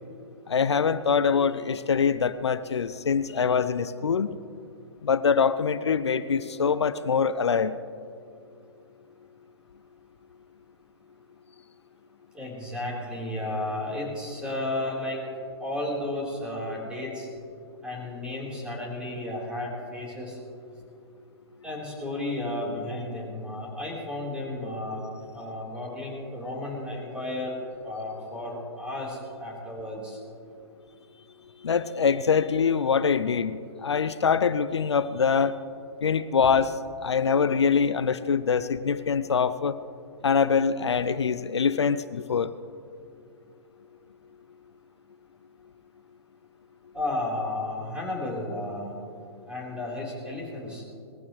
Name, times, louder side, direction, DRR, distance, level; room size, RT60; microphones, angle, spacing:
voice 1, 0.5-4.4 5.0-7.8 31.6-35.5 36.0-36.8 37.0-39.8 40.2-42.5, left 6 dB, 80° left, 14 dB, 0.5 m, -24 dB
voice 2, 12.3-15.2 15.6-17.3 17.8-20.4 21.6-25.1 25.3-27.6 27.8-30.2 46.9-49.0 49.5-50.8, left 1 dB, 5° right, -4 dB, 4.0 m, -33 dB
20.0 x 15.5 x 3.2 m, 2.4 s
figure-of-eight pair, 120°, 14 cm